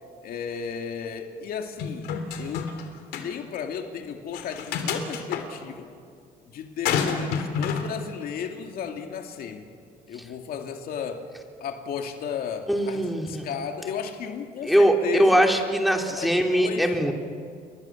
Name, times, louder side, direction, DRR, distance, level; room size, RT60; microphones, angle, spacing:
voice 1, 0.2-2.8 3.2-5.9 6.5-9.7 10.1-11.3 11.6-15.4 16.1-16.9, left 7 dB, 65° left, 4 dB, 2.5 m, -34 dB
sound 1, 1.8-2.8 3.1-3.3 4.3-5.4 6.8-7.9, left 7 dB, 85° left, 3.3 m, -28 dB
voice 2, 12.7-13.5 14.6-17.1, right 1 dB, ahead, 2 dB, 3.0 m, -21 dB
29.0 x 23.0 x 7.3 m, 2.2 s
cardioid pair, 105°, 16 cm